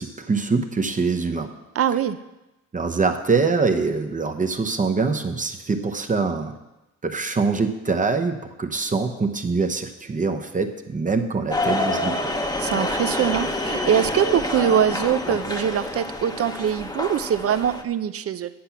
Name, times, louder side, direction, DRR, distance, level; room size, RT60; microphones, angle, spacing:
voice 1, 0.0-1.5 2.7-6.6 7.0-12.3, right 4 dB, 25° right, 6 dB, 0.9 m, -24 dB
voice 2, 1.7-2.2 12.6-18.5, right 9 dB, 50° right, 12 dB, 0.7 m, -23 dB
sound 1, 11.5-17.8, left 2 dB, 15° left, 1.1 m, -27 dB
10.5 x 7.4 x 5.9 m, 0.98 s
cardioid pair, 90°, 30 cm